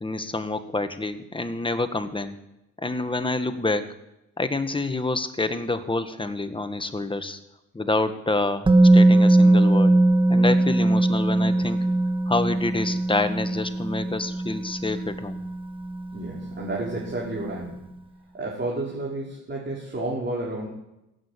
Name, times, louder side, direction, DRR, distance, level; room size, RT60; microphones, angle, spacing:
voice 1, 0.0-2.4 2.8-3.9 4.4-7.4 7.7-10.0 10.3-11.8 12.3-15.4, left 2 dB, 15° left, 9 dB, 1.4 m, -27 dB
Musical instrument, 8.7-16.6 16.8-17.0, right 2 dB, 15° right, 1.2 m, -20 dB
voice 2, 16.1-17.8 18.3-20.7, right 2 dB, 35° right, -5 dB, 4.6 m, -31 dB
16.5 x 8.6 x 8.6 m, 0.90 s
cardioid pair, 90°, 30 cm